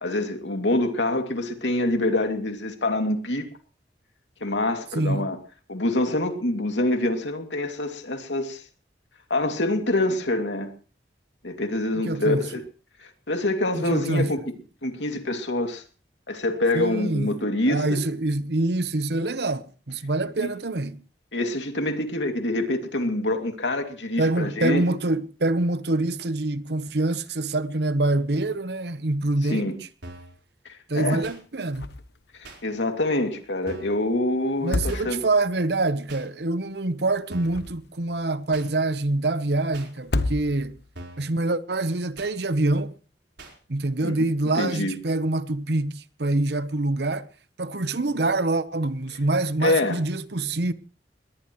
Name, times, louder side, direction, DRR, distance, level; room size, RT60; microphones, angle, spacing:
voice 1, 0.0-3.5 4.4-5.4 5.7-8.6 9.3-10.7 11.4-12.6 13.0-14.4 14.8-15.8 16.3-18.0 20.4-20.5 21.3-25.0 29.4-29.8 30.6-31.2 32.4-35.2 44.0-44.2 44.5-44.9 49.6-50.0, left 2 dB, 90° left, 2.6 m, -26 dB
voice 2, 4.9-5.3 12.0-12.5 13.8-14.3 16.7-17.4 17.7-21.0 24.2-29.9 30.9-31.9 34.6-40.8 41.2-42.9 43.7-47.3 47.6-50.7, right 2 dB, 65° right, 1.0 m, -25 dB
sound 1, 30.0-30.4 31.2-31.4 32.4-32.6 33.7-34.0 34.9-35.0 36.1-36.3 37.3-37.7 38.5-38.7 39.7-39.9 40.9-41.3 42.2-42.3 43.4-43.6, right 2 dB, 80° right, 4.3 m, -42 dB
sound 2, 31.7-32.2 32.5-32.6 34.5-35.5 37.2-38.1 40.0-40.9, left 2 dB, 65° left, 0.9 m, -30 dB
21.5 x 18.5 x 3.1 m
head